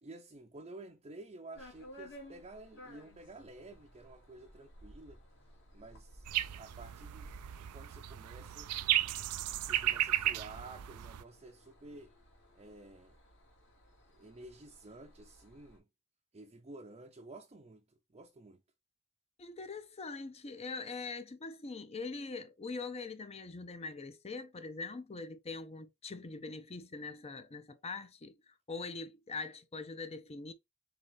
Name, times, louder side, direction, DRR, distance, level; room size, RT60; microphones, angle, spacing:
voice 1, 0.0-5.2 5.7-6.3 6.5-7.3 7.6-8.7 9.6-12.1 12.5-13.2 14.2-15.9 16.3-18.6, right 2 dB, 25° right, 0.6 m, -51 dB
sound 1, 1.6-15.8, equal, 60° left, 2.1 m, -57 dB
sound 2, 6.3-11.2, right 13 dB, 90° right, 0.4 m, -34 dB
voice 2, 19.4-30.5, left 4 dB, 30° left, 0.6 m, -43 dB
4.0 x 4.0 x 3.3 m
head